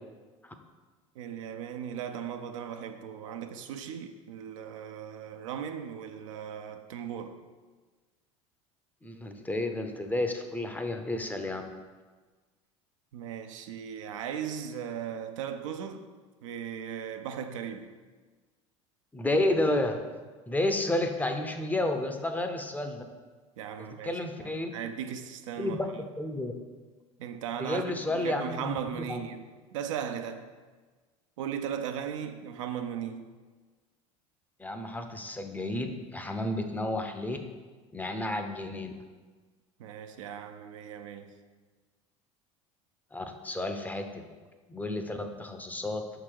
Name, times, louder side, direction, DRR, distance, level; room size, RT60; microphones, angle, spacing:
voice 1, 1.2-7.4 13.1-16.0 16.4-17.9 23.6-25.8 27.2-30.5 31.4-33.3 39.8-41.3, right 8 dB, 70° right, 0.5 m, -37 dB
voice 2, 9.0-11.6 19.1-20.0 20.5-23.0 23.8-24.7 25.6-25.9 26.2-26.5 27.6-29.2 34.6-37.4 37.9-38.9 43.1-44.2 44.7-46.0, left 1 dB, 10° left, 0.6 m, -31 dB
5.9 x 3.8 x 4.6 m
hypercardioid pair, 75°, 17 cm